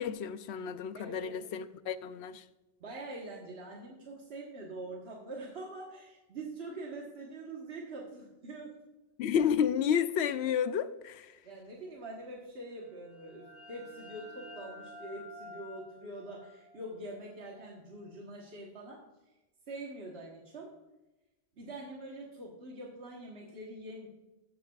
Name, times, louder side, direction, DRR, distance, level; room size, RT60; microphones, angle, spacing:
voice 1, 0.0-2.4 9.2-11.3, left 8 dB, 85° left, 0.9 m, -31 dB
voice 2, 0.9-1.5 2.8-8.8 11.4-19.0 19.7-20.8 21.6-24.1, right 2 dB, 75° right, 1.6 m, -44 dB
sound 1, 12.8-18.3, left 1 dB, 35° left, 2.8 m, -51 dB
14.0 x 7.9 x 2.4 m
omnidirectional pair, 1.1 m